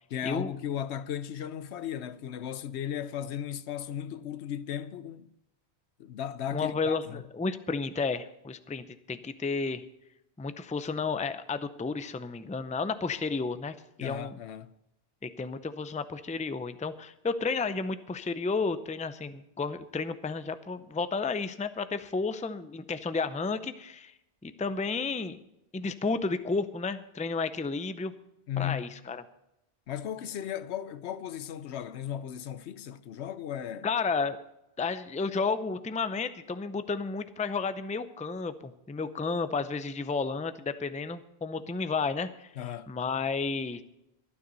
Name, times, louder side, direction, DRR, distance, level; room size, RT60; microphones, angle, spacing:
voice 1, 0.1-5.3 6.0-7.2 14.0-14.7 28.5-28.9 29.9-33.9 42.6-42.9, left 10 dB, 80° left, 1.0 m, -36 dB
voice 2, 6.5-9.8 10.4-14.4 15.2-24.1 24.4-25.4 25.7-28.1 28.6-29.2 33.8-34.4 34.8-42.5 42.9-43.8, left 4 dB, 10° left, 0.4 m, -32 dB
23.5 x 9.7 x 4.1 m
omnidirectional pair, 1.1 m